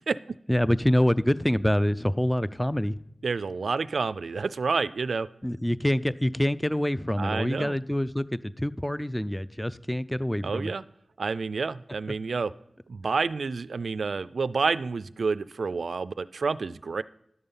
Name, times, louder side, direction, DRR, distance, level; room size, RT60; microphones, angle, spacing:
voice 1, 0.5-3.0 5.4-10.7, equal, 5° left, 16 dB, 0.5 m, -26 dB
voice 2, 3.2-5.3 7.2-7.7 10.4-10.8 11.2-12.5 12.9-17.0, right 4 dB, 80° right, 17 dB, 0.3 m, -29 dB
11.0 x 6.8 x 5.6 m, 0.75 s
cardioid pair, 40°, 0 cm